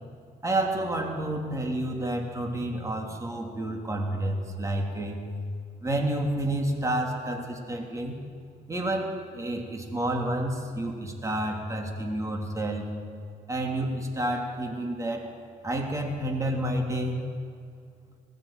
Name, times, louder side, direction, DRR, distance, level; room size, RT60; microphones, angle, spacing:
voice 1, 0.4-5.2 5.8-8.2 8.7-12.9 13.5-15.3 15.6-17.2, right 1 dB, 20° right, 1 dB, 3.3 m, -29 dB
20.0 x 15.0 x 9.2 m, 2.3 s
cardioid pair, 110°, 17 cm